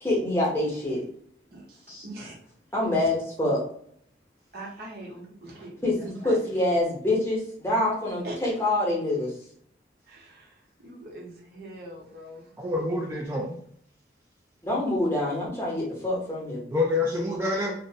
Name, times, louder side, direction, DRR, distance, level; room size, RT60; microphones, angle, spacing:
voice 1, 0.0-1.0 1.9-2.0 2.7-3.6 5.8-9.3 14.6-16.6, left 1 dB, 15° left, -4 dB, 0.7 m, -26 dB
voice 2, 1.5-2.4 4.5-6.4 8.2-8.4 10.1-12.5, right 1 dB, 60° right, -3 dB, 0.8 m, -42 dB
voice 3, 12.6-13.6 16.7-17.7, left 2 dB, 15° right, -2 dB, 0.3 m, -27 dB
2.4 x 2.1 x 2.7 m, 0.63 s
head